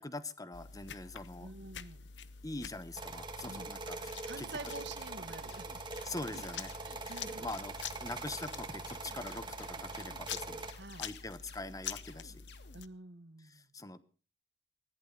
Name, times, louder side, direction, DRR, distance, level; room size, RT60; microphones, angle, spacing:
voice 1, 0.0-1.5 2.4-4.5 6.0-6.7 7.0-7.7 8.0-10.7 11.0-12.4 13.4-14.0, left 2 dB, 20° left, 14 dB, 1.1 m, -43 dB
sound 1, 0.5-12.9, left 7 dB, 85° left, 0.9 m, -47 dB
voice 2, 1.4-2.1 3.4-3.7 4.2-5.7 6.0-6.4 6.8-7.5 10.7-11.1 12.7-13.7, right 2 dB, 70° right, 11 dB, 1.6 m, -48 dB
sound 2, 2.9-10.7, right 3 dB, 25° right, 2.0 m, -43 dB
sound 3, 5.0-12.8, left 5 dB, 65° left, 2.1 m, -57 dB
20.0 x 15.0 x 4.0 m, 0.36 s
head